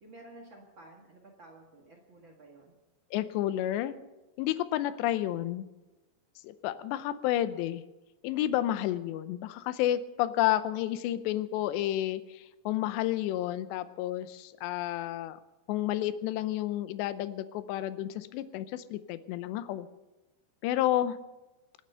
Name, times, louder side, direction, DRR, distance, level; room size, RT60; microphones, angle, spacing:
voice 1, 0.0-2.7, right 2 dB, 55° right, 0 dB, 1.3 m, -52 dB
voice 2, 3.1-4.0 4.4-5.7 6.4-7.8 8.2-15.4 15.7-19.9 20.6-21.2, left 13 dB, 80° left, 14 dB, 2.9 m, -30 dB
26.5 x 9.6 x 5.6 m, 1.1 s
omnidirectional pair, 5.1 m